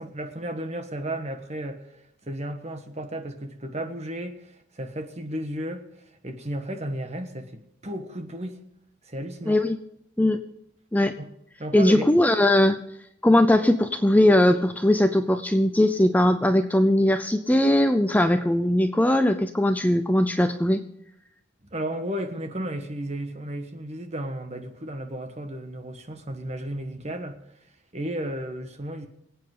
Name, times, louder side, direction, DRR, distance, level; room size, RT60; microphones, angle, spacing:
voice 1, 0.0-1.9 2.2-8.6 9.0-9.6 11.2-11.3 11.6-12.1 21.6-27.4 27.9-29.1, right 1 dB, 35° right, 6 dB, 1.4 m, -34 dB
voice 2, 9.5-9.8 10.2-10.4 10.9-11.1 11.7-12.8 13.2-20.8, left 1 dB, 10° left, 8 dB, 0.5 m, -20 dB
24.5 x 8.8 x 3.9 m, 0.79 s
head